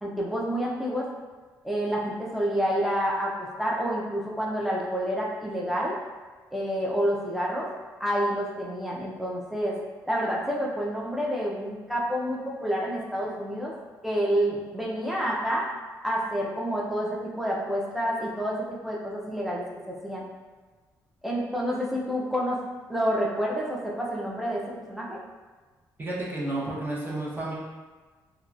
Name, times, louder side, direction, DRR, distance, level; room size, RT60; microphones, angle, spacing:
voice 1, 0.0-1.1 1.6-5.9 6.5-7.7 8.0-9.8 10.1-13.7 14.0-15.7 16.0-20.2 21.2-22.6 22.9-25.2, equal, ahead, -4 dB, 0.6 m, -28 dB
voice 2, 26.0-27.5, right 2 dB, 25° right, -6 dB, 0.9 m, -31 dB
2.9 x 2.2 x 2.5 m, 1.3 s
supercardioid pair, 70°, 8 cm